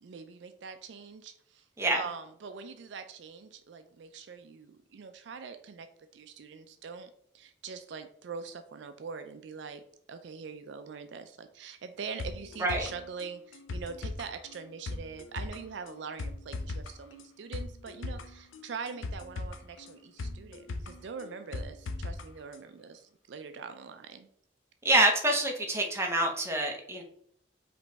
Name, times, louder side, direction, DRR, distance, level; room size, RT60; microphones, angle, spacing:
voice 1, 0.0-1.6 1.9-5.9 6.1-7.1 7.3-9.8 10.1-24.3, right 5 dB, 65° right, 9 dB, 0.4 m, -43 dB
sound 1, 12.2-22.2 22.5-22.6, left 2 dB, 85° left, 0.5 m, -39 dB
voice 2, 24.8-27.0, right 1 dB, 15° right, 2 dB, 0.8 m, -26 dB
5.1 x 3.0 x 3.4 m, 0.67 s
head